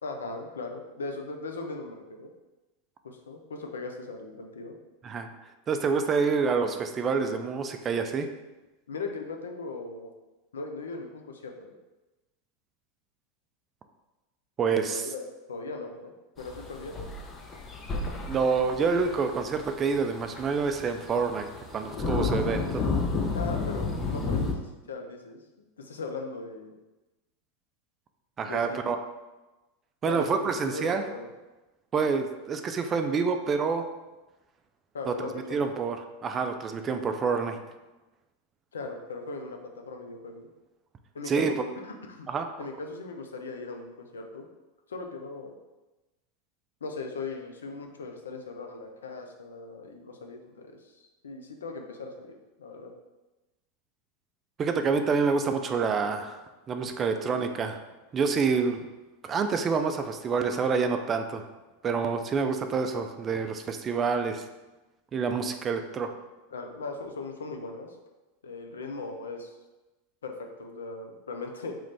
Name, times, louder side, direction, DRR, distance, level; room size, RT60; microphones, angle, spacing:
voice 1, 0.0-2.3 3.0-4.8 8.9-10.1 10.5-11.7 14.9-15.2 15.5-17.1 23.3-24.6 24.9-26.7 28.4-28.9 30.0-31.3 34.9-35.7 38.7-40.5 41.1-41.6 41.8-42.3 42.6-44.5 44.9-45.5 46.8-52.9 66.5-68.0 68.4-69.6 70.2-71.8, left 3 dB, 85° left, 4 dB, 0.4 m, -38 dB
voice 2, 5.7-8.3 14.6-15.1 18.3-22.8 28.4-29.0 30.0-31.1 31.9-33.9 35.1-36.0 36.2-37.6 41.3-41.5 42.3-42.5 54.6-57.8 58.1-58.9 59.2-61.4 61.8-64.5 65.1-66.1, right 5 dB, 30° right, 6 dB, 0.3 m, -27 dB
sound 1, 16.4-24.5, left 4 dB, 30° left, 0.5 m, -32 dB
3.1 x 2.5 x 3.3 m, 1.1 s
hypercardioid pair, 95°, 0 cm